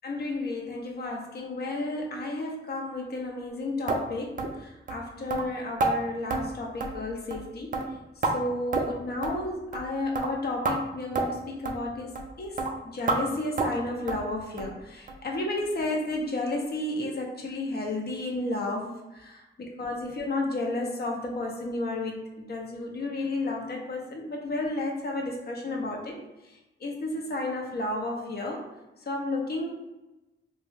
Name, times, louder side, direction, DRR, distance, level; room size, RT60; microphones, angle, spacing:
voice 1, 0.0-7.8 8.2-26.2 26.4-28.6 29.1-29.7, left 2 dB, 50° left, 0 dB, 0.6 m, -32 dB
sound 1, 3.9-4.0 4.4-4.6 4.9-5.0 5.3-5.4 5.8-5.9 6.3-6.4 6.8-7.0 7.3-7.5 7.7-8.3 8.7-9.0 9.2-9.4 9.7-9.9 10.2-10.3 10.7-10.8 11.2-11.3 11.7-11.8 12.2-12.3 12.6-12.7 13.1-13.2 13.6-13.8 14.1-14.3 14.6-14.7 15.1-15.2 15.6-15.7 16.1-16.2, right 3 dB, 40° right, 0.4 m, -28 dB
3.0 x 2.2 x 3.2 m, 1.0 s
wide cardioid pair, 175°, 21 cm